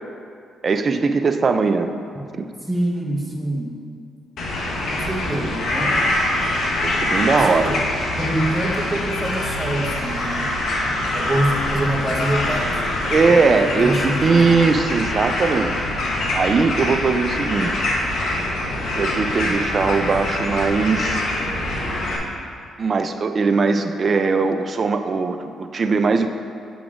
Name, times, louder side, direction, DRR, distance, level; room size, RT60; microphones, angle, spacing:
voice 1, 0.6-1.9 2.4-2.5 6.8-7.7 13.1-15.9 16.3-17.9 19.0-21.2 22.8-26.3, right 4 dB, 40° right, 8 dB, 0.4 m, -20 dB
voice 2, 2.7-3.7 4.9-6.0 7.3-7.8 8.2-10.5 11.1-14.6, right 1 dB, 5° right, -2 dB, 0.9 m, -26 dB
sound 1, 4.4-22.2, left 1 dB, 70° left, 0.9 m, -24 dB
6.9 x 6.9 x 2.5 m, 2.3 s
cardioid pair, 90°, 0 cm